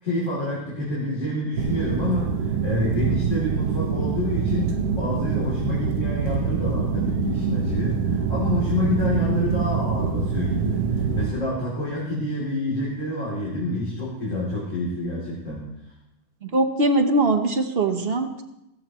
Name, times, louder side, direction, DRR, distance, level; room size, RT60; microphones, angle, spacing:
voice 1, 0.0-15.7, left 1 dB, 55° left, -7 dB, 3.5 m, -28 dB
sound 1, 1.6-11.3, right 6 dB, 75° right, 1.4 m, -25 dB
voice 2, 16.4-18.4, right 2 dB, 45° right, 6 dB, 1.2 m, -21 dB
15.5 x 14.5 x 3.0 m, 0.87 s
omnidirectional pair, 1.6 m